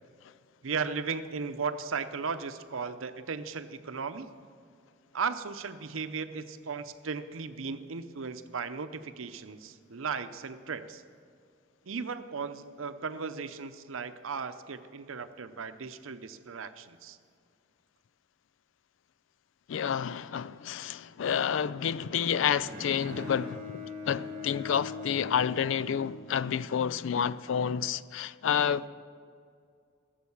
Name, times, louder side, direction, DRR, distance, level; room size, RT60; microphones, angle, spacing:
voice 1, 0.6-4.3 5.1-11.0 11.8-17.2, right 5 dB, 85° right, 0.7 m, -36 dB
voice 2, 19.7-28.9, left 8 dB, 70° left, 0.4 m, -29 dB
Bowed string instrument, 22.6-26.8, left 3 dB, 40° right, 1.2 m, -42 dB
15.0 x 7.6 x 7.0 m
head